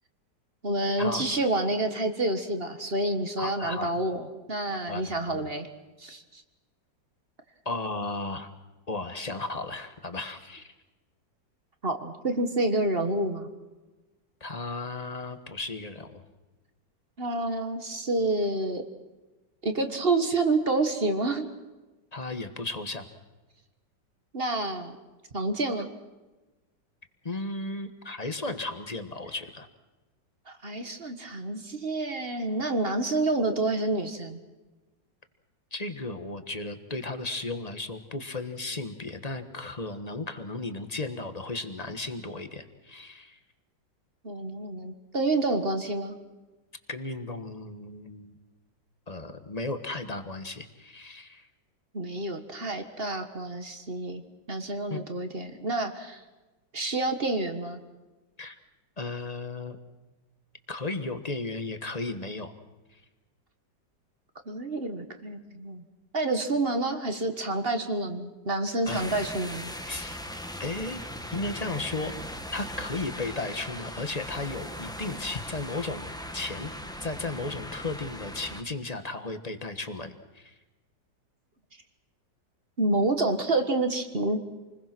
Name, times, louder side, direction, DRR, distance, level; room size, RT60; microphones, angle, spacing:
voice 1, 0.6-5.7 6.0-6.4 11.8-13.5 17.2-18.8 19.6-21.5 24.3-25.0 25.3-25.9 30.5-34.4 44.2-46.2 51.9-54.2 54.5-56.2 56.7-57.8 64.4-65.8 66.1-69.7 82.8-84.4, right 2 dB, 30° right, 7 dB, 1.7 m, -28 dB
voice 2, 3.4-3.9 4.9-5.4 7.6-8.5 8.9-10.7 14.4-16.2 22.1-23.1 27.2-29.7 35.7-43.4 46.9-48.3 49.1-51.5 54.9-55.0 58.4-58.6 59.0-59.8 60.7-62.5 68.9-69.2 69.9-70.2 70.6-71.0 71.3-72.1 72.5-76.7 77.0-80.5, left 2 dB, 25° left, 8 dB, 1.3 m, -35 dB
sound 1, 68.8-78.6, equal, 5° left, 1.1 m, -39 dB
28.5 x 21.0 x 6.1 m, 1.2 s
omnidirectional pair, 2.0 m